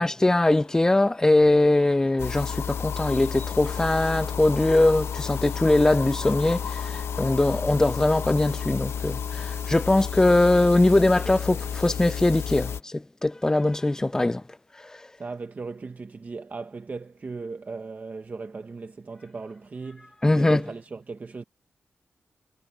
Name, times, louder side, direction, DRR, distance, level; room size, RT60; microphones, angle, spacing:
voice 1, 0.0-14.4 20.2-20.6, left 2 dB, 15° left, 0.3 m, -21 dB
Bird, 0.5-6.3, left 4 dB, 45° left, 4.5 m, -52 dB
sound 1, 2.2-12.8, left 7 dB, 85° left, 1.1 m, -31 dB
voice 2, 15.2-21.4, right 4 dB, 40° right, 1.1 m, -37 dB
wide cardioid pair, 110°, 4 cm